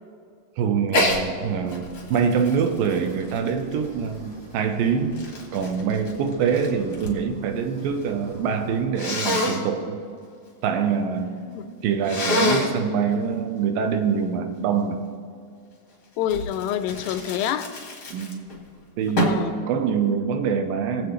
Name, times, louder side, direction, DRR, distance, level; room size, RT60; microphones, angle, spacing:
voice 1, 0.6-1.9 2.1-5.2 5.5-10.0 10.6-11.4 11.8-15.0 18.1-18.4 19.0-21.1, right 6 dB, 80° right, 6 dB, 2.5 m, -24 dB
Sneeze, 0.9-1.2 1.7-4.0 4.7-7.2 7.5-8.1 9.0-9.6 12.0-12.8 16.3-18.6 19.2-19.5, left 1 dB, 40° left, 1.6 m, -27 dB
sound 1, 1.3-8.9, right 1 dB, 40° right, 1.7 m, -44 dB
voice 2, 16.2-17.7 19.2-19.7, left 10 dB, 85° left, 11 dB, 2.3 m, -27 dB
20.5 x 8.0 x 3.2 m, 2.2 s
omnidirectional pair, 4.1 m